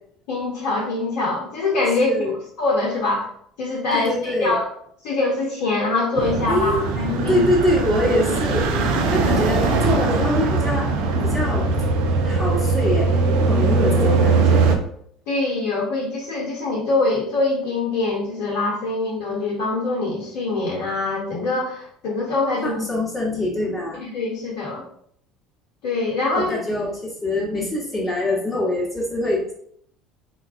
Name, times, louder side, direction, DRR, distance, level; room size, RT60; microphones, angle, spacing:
voice 1, 0.3-2.1 2.6-3.3 3.6-4.7 5.0-6.8 7.0-7.4 15.3-22.8 23.9-24.8 25.8-26.6, left 3 dB, 65° left, -4 dB, 0.8 m, -23 dB
voice 2, 2.0-2.4 3.9-4.5 6.5-6.8 7.3-8.7 9.1-10.9 11.2-11.7 12.2-13.1 13.4-14.7 22.6-24.0 26.3-29.5, left 1 dB, 15° left, -6 dB, 1.0 m, -24 dB
sound 1, 6.2-14.8, right 3 dB, 70° right, 0.4 m, -20 dB
3.8 x 2.3 x 2.4 m, 0.66 s
hypercardioid pair, 65°, 0 cm